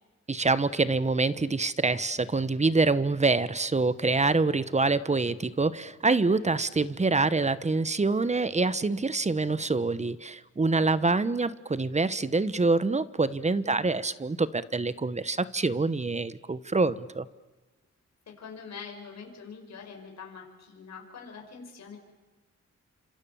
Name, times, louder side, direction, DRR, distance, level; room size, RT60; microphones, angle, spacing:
voice 1, 0.3-17.3, right 3 dB, 25° right, 16 dB, 1.1 m, -26 dB
voice 2, 13.5-13.9 18.4-22.0, left 5 dB, 65° left, 1 dB, 6.1 m, -44 dB
29.5 x 27.0 x 7.2 m, 1.2 s
cardioid pair, 105°, 29 cm